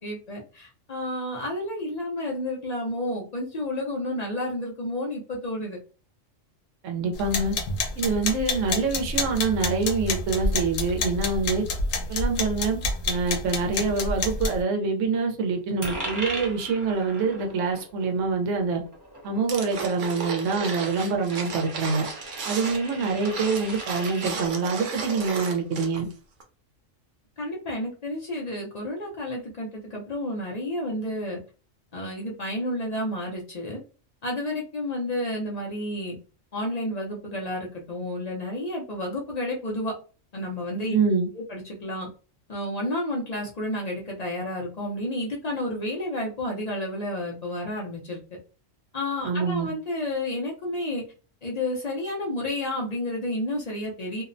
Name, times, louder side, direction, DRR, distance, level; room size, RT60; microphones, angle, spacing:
voice 1, 0.0-5.8 27.4-31.4 31.9-33.8 34.2-36.2 36.5-39.9 40.3-41.0 41.3-42.1 42.5-48.2 48.9-51.0 51.4-54.2, left 1 dB, 50° left, -1 dB, 0.5 m, -31 dB
voice 2, 6.8-7.5 8.0-11.6 12.1-18.8 19.2-22.0 22.5-26.1 40.9-41.3 49.2-49.7, right 4 dB, 75° right, 3 dB, 1.0 m, -25 dB
sound 1, 7.1-14.6, left 3 dB, 85° left, 1.0 m, -29 dB
Coin (dropping), 15.8-24.3, right 1 dB, 20° right, 0.7 m, -39 dB
sound 2, 19.5-26.1 26.4-26.5, right 4 dB, 55° right, 0.6 m, -34 dB
2.6 x 2.0 x 2.5 m, 0.36 s
omnidirectional pair, 1.3 m